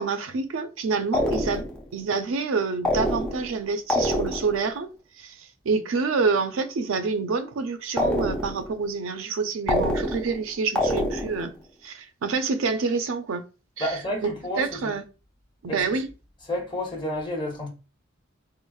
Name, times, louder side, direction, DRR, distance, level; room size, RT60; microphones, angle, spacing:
voice 1, 0.0-1.7 1.9-4.9 5.2-11.5 11.8-13.4 13.8-15.0 15.6-16.1, right 4 dB, 80° right, 0.4 m, -27 dB
sound 1, 1.1-1.8 2.8-3.6 3.9-4.6 8.0-8.7 9.7-10.4 10.8-11.5, left 1 dB, 5° left, 0.3 m, -26 dB
voice 2, 13.8-14.9 15.6-15.8 16.5-17.7, left 1 dB, 25° left, 0.8 m, -30 dB
3.7 x 2.0 x 2.3 m
head